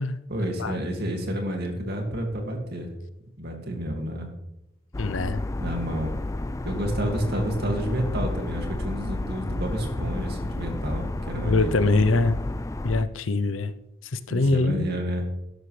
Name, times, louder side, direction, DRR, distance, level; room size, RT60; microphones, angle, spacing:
voice 1, 0.3-2.9 3.4-4.3 5.6-6.1 6.6-11.9 14.3-15.2, equal, 55° right, 3 dB, 2.3 m, -30 dB
sound 1, 4.9-13.0, left 2 dB, 15° left, 0.4 m, -31 dB
voice 2, 5.0-5.4 11.4-12.4 12.8-13.7 14.1-14.9, left 3 dB, 75° left, 12 dB, 0.7 m, -23 dB
12.0 x 11.0 x 3.3 m, 0.87 s
head